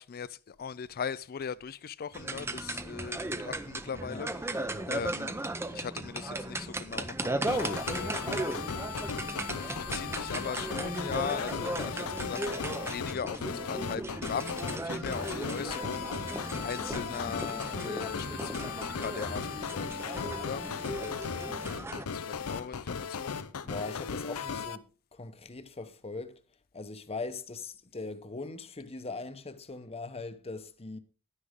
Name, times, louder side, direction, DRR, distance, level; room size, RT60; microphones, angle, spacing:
voice 1, 0.0-4.3 4.9-5.4 5.7-8.4 9.7-12.4 12.8-21.5 22.0-23.4, left 7 dB, 45° left, 0.4 m, -39 dB
sound 1, 2.1-22.0, right 2 dB, 10° right, 0.6 m, -36 dB
sound 2, 7.5-24.8, left 6 dB, 80° left, 0.6 m, -37 dB
voice 2, 23.6-24.9 25.1-26.4 26.7-31.0, left 3 dB, 25° left, 0.9 m, -40 dB
11.0 x 9.8 x 3.6 m
head